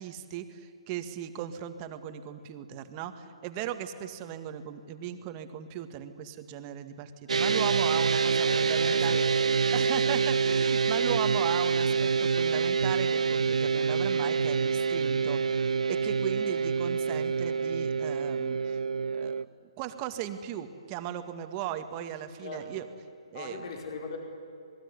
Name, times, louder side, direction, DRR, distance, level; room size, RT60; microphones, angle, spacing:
voice 1, 0.0-9.2 9.7-18.8 19.1-19.3 19.8-22.9 23.3-23.7, right 10 dB, 25° right, 8 dB, 1.9 m, -37 dB
sound 1, 7.3-19.4, right 5 dB, 85° right, 0.6 m, -26 dB
voice 2, 8.4-10.2 22.4-22.8 23.3-24.2, left 3 dB, 50° left, 3 dB, 5.2 m, -40 dB
27.5 x 21.0 x 9.8 m, 2.7 s
hypercardioid pair, 150°, 3 cm